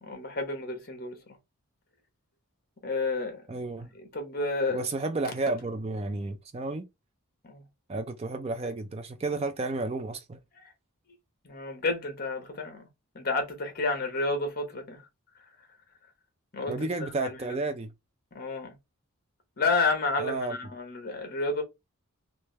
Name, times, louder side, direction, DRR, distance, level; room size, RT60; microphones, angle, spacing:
voice 1, 0.0-1.4 2.8-3.6 3.9-4.9 7.4-7.6 10.5-10.7 11.4-12.9 13.1-15.1 16.5-17.6 18.3-18.8 19.6-21.6, left 3 dB, 45° left, 1.2 m, -31 dB
voice 2, 3.5-3.9 4.7-6.8 7.9-10.4 16.7-17.9 20.2-20.6, right 3 dB, 25° right, 0.4 m, -32 dB
3.3 x 3.2 x 3.2 m
head